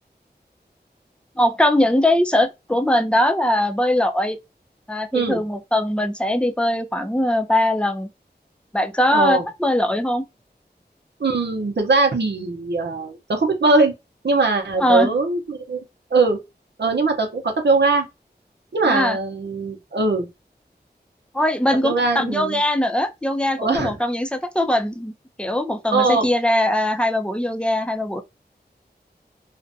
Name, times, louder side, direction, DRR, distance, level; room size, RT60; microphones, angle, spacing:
voice 1, 1.4-4.4 4.9-8.1 8.7-10.2 14.8-15.1 18.8-19.2 21.3-25.1 25.4-28.2, left 1 dB, 5° left, 0.5 m, -21 dB
voice 2, 9.1-9.4 11.2-13.9 14.2-15.8 16.1-16.4 16.8-18.1 18.7-20.3 21.8-22.6 23.6-24.0 25.9-26.3, right 3 dB, 80° right, 0.7 m, -20 dB
2.5 x 2.2 x 2.6 m
wide cardioid pair, 55°, 18 cm